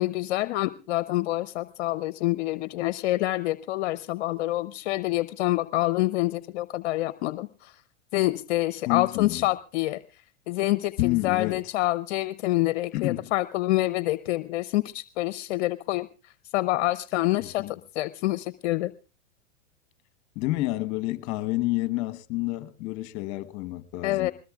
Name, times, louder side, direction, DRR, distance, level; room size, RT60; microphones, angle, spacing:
voice 1, 0.0-7.8 8.1-10.2 10.5-18.9 24.0-24.3, left 17 dB, 65° left, 0.7 m, -27 dB
voice 2, 8.8-9.5 11.0-11.6 12.9-13.3 17.4-17.7 20.3-24.3, left 18 dB, 50° left, 1.2 m, -29 dB
21.5 x 20.0 x 2.4 m
hypercardioid pair, 105°, 36 cm